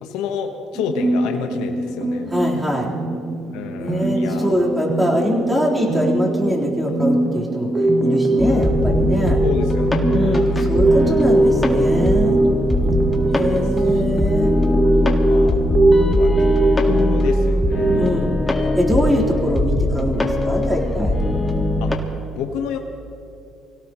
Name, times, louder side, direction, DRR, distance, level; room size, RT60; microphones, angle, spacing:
voice 1, 0.0-2.3 3.5-4.5 9.4-10.8 13.5-13.6 15.2-15.6 16.0-16.6 16.9-18.2 21.8-21.9 22.4-22.8, left 6 dB, 80° left, 4 dB, 1.1 m, -29 dB
sound 1, 0.7-18.1, right 2 dB, 30° right, 1.3 m, -21 dB
voice 2, 2.3-2.9 3.8-9.4 10.1-12.4 13.3-14.5 15.5-15.8 17.9-18.3 18.8-21.2, equal, 10° right, -4 dB, 3.9 m, -23 dB
sound 2, 8.4-21.9, left 1 dB, 15° left, 1.8 m, -21 dB
25.0 x 17.0 x 3.1 m, 2.7 s
supercardioid pair, 95°, 0 cm